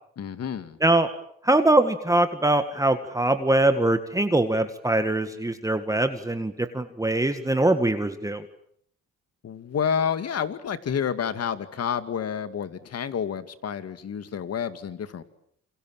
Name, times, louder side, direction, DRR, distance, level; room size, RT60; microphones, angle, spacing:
voice 1, 0.2-0.8 9.4-15.2, left 7 dB, 55° left, 11 dB, 2.3 m, -29 dB
voice 2, 1.4-8.4, right 2 dB, 10° right, 8 dB, 1.9 m, -22 dB
28.5 x 27.0 x 7.5 m, 0.67 s
cardioid pair, 90°, 30 cm